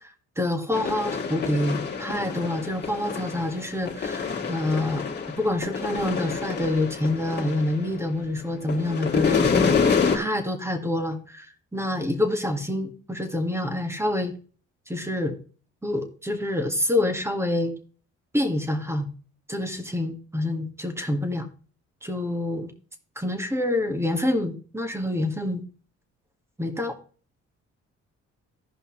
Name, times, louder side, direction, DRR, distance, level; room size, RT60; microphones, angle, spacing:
voice 1, 0.4-14.3 14.9-15.4 15.8-17.7 18.3-19.1 19.5-21.5 22.0-22.7 23.2-25.6 26.6-26.9, left 1 dB, 10° right, 7 dB, 1.8 m, -27 dB
sound 1, 0.7-8.2 8.5-10.2, left 5 dB, 35° left, 2.1 m, -27 dB
15.5 x 5.4 x 3.1 m, 0.40 s
cardioid pair, 90°, 30 cm